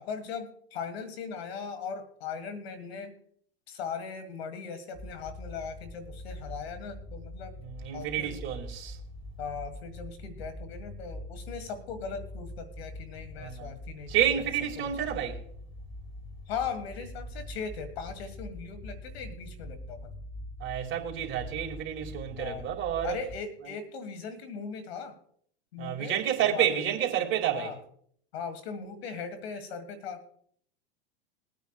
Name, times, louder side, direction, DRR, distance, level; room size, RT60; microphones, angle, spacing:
voice 1, 0.0-3.2 3.7-7.5 7.9-8.4 9.4-14.1 14.8-15.2 16.5-20.1 22.4-22.7 23.0-25.1 25.7-26.2 26.5-26.7 27.5-27.8 28.3-30.2, left 6 dB, 75° left, 1.8 m, -39 dB
sound 1, 4.9-23.4, left 1 dB, 20° left, 1.2 m, -44 dB
voice 2, 7.6-9.0 13.4-13.7 14.1-15.4 20.6-23.2 25.8-27.7, right 10 dB, 40° right, 2.3 m, -29 dB
21.5 x 9.2 x 2.4 m
hypercardioid pair, 115°, 31 cm